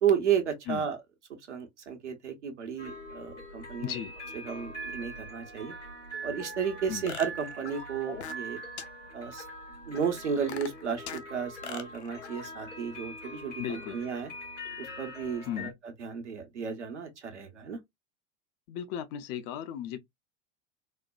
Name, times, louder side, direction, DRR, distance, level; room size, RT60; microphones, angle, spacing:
voice 1, 0.0-1.0 1.5-3.9 4.4-5.7 6.2-8.6 9.1-9.4 9.9-14.3 14.8-15.7 16.0-17.8, right 7 dB, 70° right, 1.0 m, -33 dB
sound 1, 2.8-15.7, right 1 dB, 85° left, 1.7 m, -43 dB
voice 2, 3.8-4.2 6.9-7.1 13.6-14.0 15.5-15.7 18.7-20.0, left 10 dB, 30° left, 0.4 m, -36 dB
sound 2, 7.1-8.5 8.8-8.9 9.4-9.5 9.9-11.2 11.6-12.4, left 8 dB, 65° left, 0.7 m, -41 dB
4.2 x 2.1 x 2.3 m
figure-of-eight pair, 80°, 36 cm